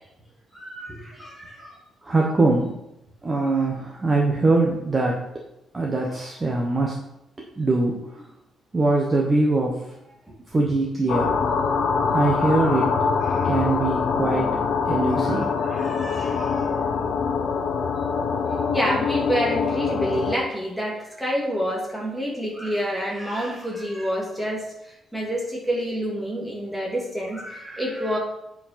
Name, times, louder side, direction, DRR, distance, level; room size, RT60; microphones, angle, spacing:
voice 1, 0.5-1.8 3.4-3.6 11.8-11.9 12.4-12.8 13.2-13.5 15.1-16.9 18.7-28.2, equal, ahead, -4 dB, 2.2 m, -29 dB
voice 2, 2.0-2.8 3.2-5.2 5.7-7.0 7.6-8.3 8.7-9.8 10.5-11.3 12.1-12.9 13.4-14.6 14.9-15.8, right 2 dB, 20° right, -2 dB, 1.0 m, -22 dB
sound 1, 11.1-20.4, left 5 dB, 60° left, 0.8 m, -24 dB
8.3 x 4.7 x 5.7 m, 0.85 s
cardioid pair, 175°, 0 cm